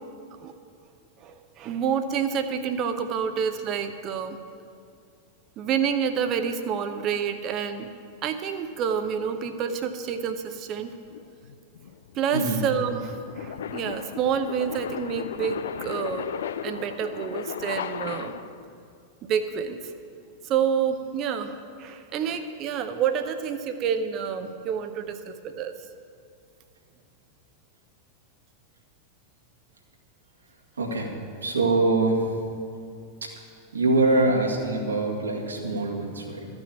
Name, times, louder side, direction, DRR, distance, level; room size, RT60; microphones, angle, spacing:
voice 1, 1.2-4.4 5.6-7.9 8.2-10.9 12.2-16.3 16.6-18.3 19.3-19.8 20.4-25.7, right 7 dB, 35° right, 8 dB, 0.8 m, -28 dB
sound 1, 11.1-18.7, left 8 dB, 65° left, 0.4 m, -36 dB
voice 2, 30.8-31.1 31.4-32.4 33.2-33.3 33.7-36.5, right 2 dB, 75° right, -1 dB, 2.0 m, -24 dB
14.0 x 6.2 x 8.6 m, 2.4 s
figure-of-eight pair, 90°, 0 cm